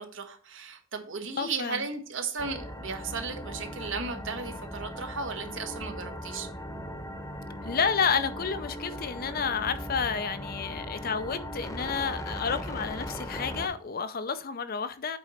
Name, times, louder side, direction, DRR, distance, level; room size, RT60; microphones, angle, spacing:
voice 1, 0.0-6.5, right 4 dB, 65° right, 1.2 m, -35 dB
voice 2, 1.4-1.8 7.6-15.2, left 6 dB, 45° left, 0.5 m, -30 dB
sound 1, 2.4-13.7, equal, 15° left, 0.9 m, -38 dB
8.0 x 4.2 x 4.2 m
head